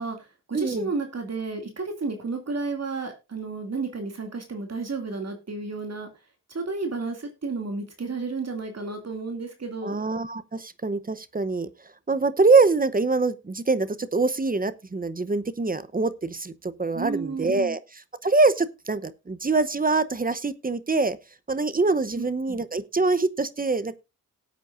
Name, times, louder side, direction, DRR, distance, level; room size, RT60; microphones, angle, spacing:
voice 1, 0.0-6.1 6.5-10.0 16.9-17.8 22.1-22.6, right 4 dB, 50° right, 2.5 m, -32 dB
voice 2, 0.5-0.9 9.8-11.7 12.1-17.8 18.2-21.2 21.5-24.0, right 3 dB, 25° right, 0.8 m, -24 dB
18.5 x 8.3 x 2.5 m
wide cardioid pair, 90°, 32 cm